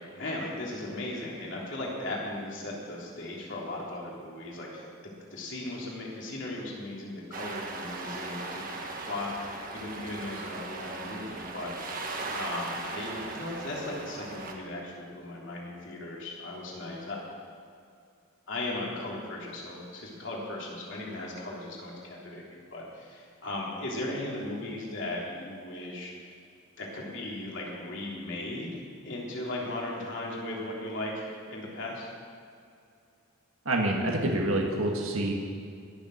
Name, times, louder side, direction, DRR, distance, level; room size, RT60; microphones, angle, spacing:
voice 1, 0.1-4.9 5.3-8.6 9.0-17.2 18.5-26.1 26.8-28.8 29.0-32.1, left 1 dB, 60° left, -3 dB, 3.4 m, -37 dB
sound 1, 7.3-14.5, right 3 dB, 45° right, 1.5 m, -38 dB
voice 2, 33.7-35.3, right 1 dB, 85° right, 0 dB, 1.8 m, -27 dB
21.5 x 7.2 x 6.5 m, 2.4 s
head